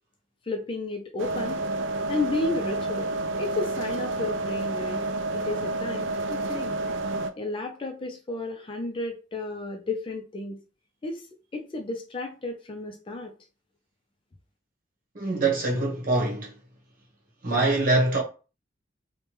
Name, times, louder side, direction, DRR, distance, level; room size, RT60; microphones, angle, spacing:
voice 1, 0.5-1.6 2.1-3.1 3.4-5.0 5.3-6.8 7.4-10.6 11.0-11.3 11.5-13.3, left 2 dB, 25° left, 0.4 m, -32 dB
sound 1, 1.2-7.3, right 2 dB, 80° right, 0.3 m, -29 dB
voice 2, 15.1-16.5 17.4-18.2, right 2 dB, 50° right, 1.0 m, -24 dB
3.2 x 2.1 x 2.9 m
head